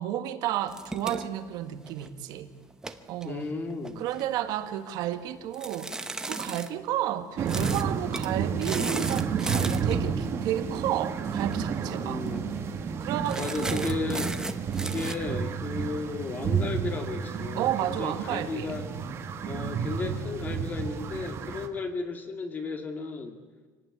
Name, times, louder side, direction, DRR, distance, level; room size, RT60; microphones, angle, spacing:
voice 1, 0.0-2.5 3.1-3.5 4.0-5.9 6.3-12.2 13.0-13.9 17.5-18.8, right 12 dB, 60° right, 9 dB, 1.7 m, -32 dB
sound 1, 0.7-2.2 2.7-4.2 5.5-6.7 7.5-7.9 8.1-8.3 8.6-10.0 11.3-11.6 11.9-12.0 12.3-12.6 13.3-15.1, right 2 dB, 10° right, 0.9 m, -36 dB
voice 2, 3.2-4.1 12.0-12.4 13.4-14.3 14.8-18.9 19.5-23.4, left 4 dB, 25° left, 6 dB, 2.3 m, -34 dB
sound 2, 7.4-21.7, right 6 dB, 35° right, 1.8 m, -31 dB
25.5 x 18.0 x 9.7 m, 1.4 s
cardioid pair, 170°, 8 cm